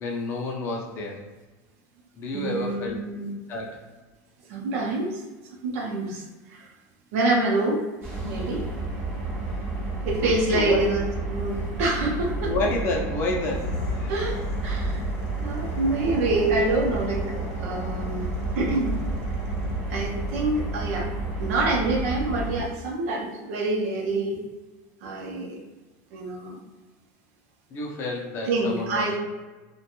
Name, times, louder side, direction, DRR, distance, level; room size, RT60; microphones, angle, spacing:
voice 1, 0.0-1.2 2.2-3.0 3.5-3.8 10.2-10.9 12.0-12.1 12.4-14.1 27.7-29.2, left 2 dB, 30° left, -1 dB, 0.5 m, -30 dB
voice 2, 2.3-3.3 4.5-5.2 5.6-6.7 7.1-7.9 8.2-8.7 10.0-12.5 14.1-14.4 14.6-15.0 15.4-19.0 19.9-21.1 21.4-24.4 25.0-25.6 26.1-26.6 28.4-29.2, right 2 dB, 65° right, 0 dB, 0.6 m, -26 dB
sound 1, 8.0-22.6, right 2 dB, 30° right, 0.6 m, -31 dB
sound 2, 13.3-20.1, left 1 dB, 80° left, 0.6 m, -34 dB
2.5 x 2.2 x 2.9 m, 1.2 s
supercardioid pair, 160°, 8 cm